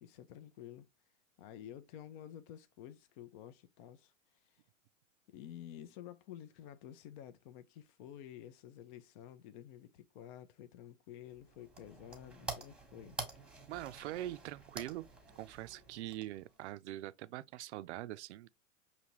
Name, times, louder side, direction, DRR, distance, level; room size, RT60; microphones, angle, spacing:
voice 1, 0.0-0.9 1.4-4.6 5.3-13.2, left 11 dB, 40° left, 0.5 m, -51 dB
sound 1, 11.3-16.7, right 3 dB, ahead, 1.1 m, -48 dB
voice 2, 13.7-15.1 15.4-18.5, right 14 dB, 60° right, 0.5 m, -43 dB
5.7 x 2.8 x 2.9 m
hypercardioid pair, 105°, 40 cm